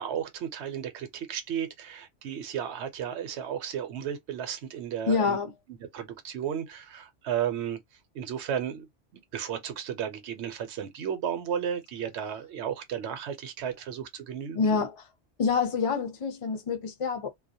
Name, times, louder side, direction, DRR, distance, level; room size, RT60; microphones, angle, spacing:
voice 1, 0.0-5.4 5.7-7.8 8.1-8.8 9.1-14.8, right 9 dB, 70° right, 0.9 m, -34 dB
voice 2, 5.1-5.5 14.5-15.0 15.4-17.3, left 5 dB, 35° left, 0.5 m, -27 dB
2.2 x 2.1 x 2.6 m
omnidirectional pair, 1.3 m